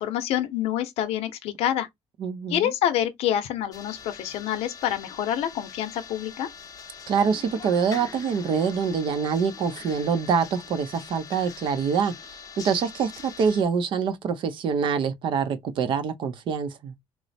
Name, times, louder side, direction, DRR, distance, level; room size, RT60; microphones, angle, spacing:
voice 1, 0.0-1.9 2.5-6.5, left 11 dB, 85° left, 0.6 m, -27 dB
voice 2, 2.2-2.7 7.1-16.9, right 6 dB, 55° right, 0.6 m, -25 dB
sound 1, 3.7-13.6, left 6 dB, 35° left, 0.6 m, -43 dB
3.0 x 2.0 x 4.0 m
cardioid pair, 160°, 10 cm